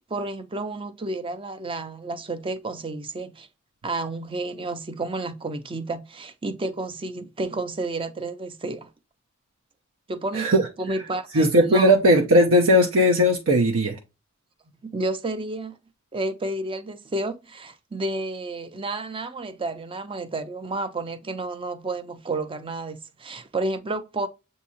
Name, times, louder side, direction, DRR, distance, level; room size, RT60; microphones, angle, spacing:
voice 1, 0.1-3.5 3.8-8.9 10.1-10.5 10.8-11.9 14.8-15.8 16.1-24.3, right 2 dB, 25° right, 0.5 m, -31 dB
voice 2, 10.3-10.7 11.3-14.0, equal, 75° right, 0.7 m, -18 dB
7.2 x 2.7 x 2.7 m
head